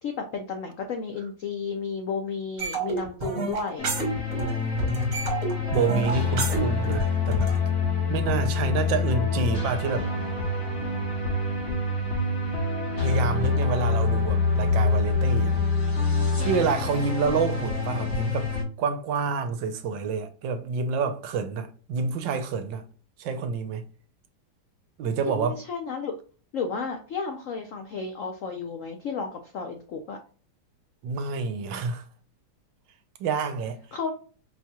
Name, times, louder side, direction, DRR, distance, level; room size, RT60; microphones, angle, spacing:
voice 1, 0.0-3.9 25.2-26.1 26.5-30.2 33.9-34.1, left 5 dB, 80° left, 0.7 m, -33 dB
sound 1, 2.6-4.5 4.8-7.6, right 3 dB, 45° right, 1.5 m, -30 dB
sound 2, 3.8-18.6, left 4 dB, 40° left, 1.3 m, -26 dB
voice 2, 4.4-5.2 5.7-7.5 8.1-10.1 13.0-15.5 16.4-18.5 18.8-22.8 23.2-23.8 25.0-25.6 31.0-32.0 33.2-33.8, right 5 dB, 75° right, 1.3 m, -28 dB
4.5 x 2.8 x 2.2 m
omnidirectional pair, 2.1 m